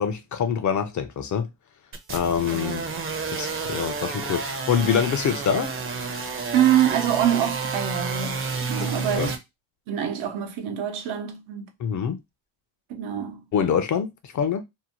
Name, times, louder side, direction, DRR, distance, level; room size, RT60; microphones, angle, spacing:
voice 1, 0.0-1.5 2.1-2.8 3.3-5.7 8.8-9.3 11.8-12.2 13.5-14.6, left 7 dB, 40° left, 0.4 m, -25 dB
sound 1, 1.9-9.4, right 4 dB, 30° right, 0.5 m, -30 dB
voice 2, 6.5-9.4 9.9-11.7 12.9-13.4, right 10 dB, 90° right, 0.8 m, -25 dB
2.7 x 2.1 x 2.8 m
cardioid pair, 130°, 47 cm